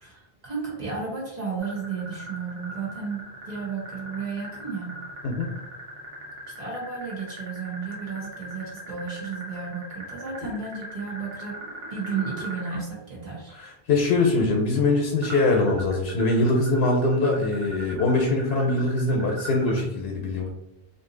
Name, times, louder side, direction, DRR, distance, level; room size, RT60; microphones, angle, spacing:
voice 1, 0.0-5.0 6.6-11.6 11.9-13.5, right 5 dB, 45° right, -4 dB, 0.9 m, -33 dB
sound 1, 1.6-12.8 15.2-19.9, right 1 dB, 70° right, 1.2 m, -40 dB
voice 2, 13.5-20.5, left 2 dB, 80° left, 1 dB, 0.8 m, -23 dB
2.6 x 2.5 x 3.7 m, 0.88 s
omnidirectional pair, 1.0 m